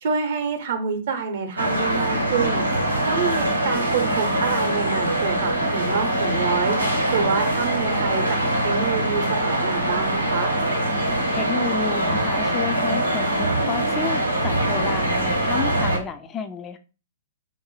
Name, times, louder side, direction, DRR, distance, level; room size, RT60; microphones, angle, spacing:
voice 1, 0.0-2.6 3.0-6.8 7.1-10.5, right 6 dB, 55° right, 0.7 m, -27 dB
sound 1, 1.6-16.0, right 1 dB, 90° right, 0.7 m, -23 dB
voice 2, 11.0-16.8, left 7 dB, 20° left, 0.3 m, -31 dB
3.8 x 2.1 x 3.1 m
figure-of-eight pair, 110°, 0 cm